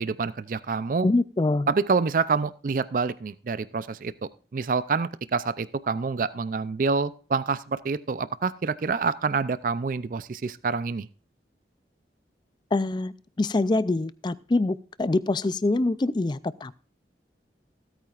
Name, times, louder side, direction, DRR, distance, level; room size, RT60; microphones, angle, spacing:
voice 1, 0.0-1.1 1.7-4.1 4.5-11.1, right 4 dB, 50° right, 16 dB, 0.4 m, -27 dB
voice 2, 1.0-1.7 12.7-16.7, left 2 dB, 25° left, 17 dB, 0.3 m, -25 dB
16.0 x 8.8 x 2.4 m, 0.37 s
head